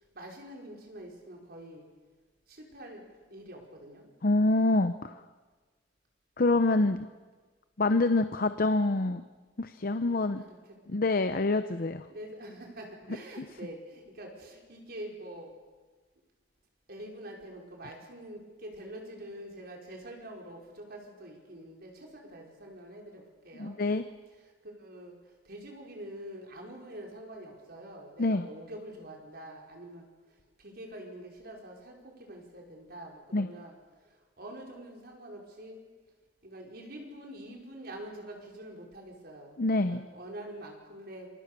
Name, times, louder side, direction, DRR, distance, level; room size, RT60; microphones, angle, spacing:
voice 1, 0.2-1.8 2.5-4.0 6.4-6.6 10.2-10.6 12.1-15.5 16.9-23.7 24.8-25.2 25.5-30.1 30.6-33.8 34.4-35.8 36.4-39.6 39.9-41.3, right 1 dB, 60° right, 0 dB, 5.2 m, -45 dB
voice 2, 4.2-5.1 6.4-7.1 7.8-9.2 9.6-10.4 10.9-12.1 13.4-13.5 23.6-24.0 28.2-28.5 33.3-33.5 39.6-40.0, left 2 dB, 50° left, 10 dB, 0.7 m, -26 dB
28.5 x 24.5 x 6.9 m, 1.4 s
head